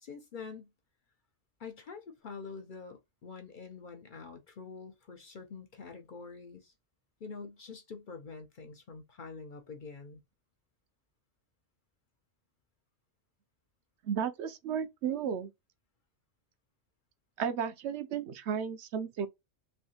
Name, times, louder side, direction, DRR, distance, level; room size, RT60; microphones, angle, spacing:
voice 1, 0.0-0.7 1.6-6.7 7.2-10.2, left 5 dB, 55° left, 0.6 m, -46 dB
voice 2, 14.0-15.5 17.4-19.3, right 7 dB, 70° right, 0.8 m, -33 dB
3.3 x 2.7 x 2.7 m
omnidirectional pair, 1.2 m